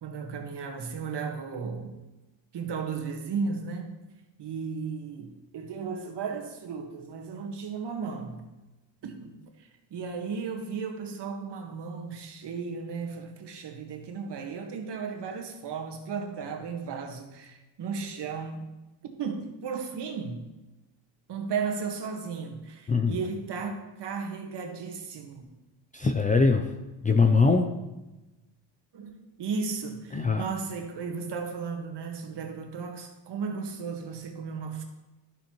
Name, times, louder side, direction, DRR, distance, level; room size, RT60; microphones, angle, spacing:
voice 1, 0.0-2.0 2.5-3.9 4.4-8.5 9.0-18.7 19.2-20.4 21.3-25.4 28.9-34.8, right 5 dB, 60° right, 3 dB, 1.6 m, -35 dB
voice 2, 25.9-26.7 27.0-27.7 30.1-30.4, left 4 dB, 20° left, 5 dB, 0.4 m, -22 dB
12.0 x 7.3 x 3.1 m, 1.0 s
cardioid pair, 120°, 48 cm